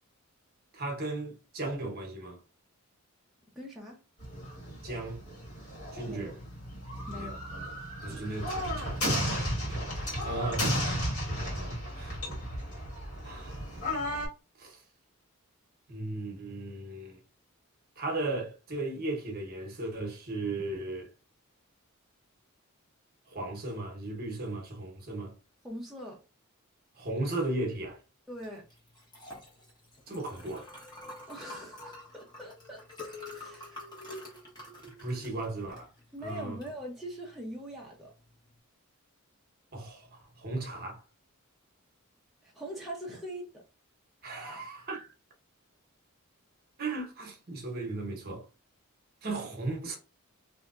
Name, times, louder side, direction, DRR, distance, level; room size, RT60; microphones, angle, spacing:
voice 1, 0.7-2.4 4.8-5.2 5.9-6.4 7.1-7.4 8.0-12.2 13.2-13.7 14.6-14.8 15.9-17.2 18.0-21.1 23.3-25.3 27.0-28.0 30.1-30.7 35.0-35.9 36.2-36.6 39.7-41.0 44.2-45.1 46.8-48.4 49.2-50.0, right 2 dB, 45° right, 1.0 m, -36 dB
voice 2, 3.6-4.0 6.1-6.3 7.1-7.5 25.6-26.2 28.3-28.6 31.3-33.9 36.1-38.1 42.4-43.5 44.4-44.6, equal, ahead, 0.7 m, -42 dB
sound 1, 4.2-14.3, equal, 80° left, 1.7 m, -34 dB
Liquid, 28.4-38.5, left 1 dB, 20° left, 1.2 m, -48 dB
3.4 x 2.6 x 2.5 m
head